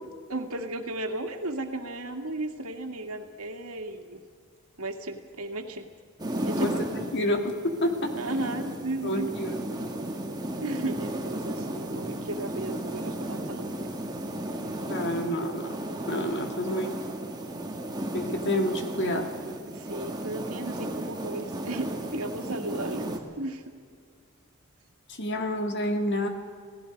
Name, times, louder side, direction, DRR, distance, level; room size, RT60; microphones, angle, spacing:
voice 1, 0.3-4.2 4.8-5.9 6.4-7.0 8.2-9.3 10.6-13.9 19.7-23.6, right 2 dB, 80° right, 5 dB, 2.1 m, -35 dB
sound 1, 6.2-23.2, right 1 dB, 20° right, 1.9 m, -34 dB
voice 2, 6.6-8.1 9.0-9.5 14.9-15.7 16.1-17.0 18.1-19.3 25.1-26.3, left 1 dB, 55° left, 4 dB, 2.4 m, -29 dB
28.5 x 18.0 x 5.3 m, 2.1 s
head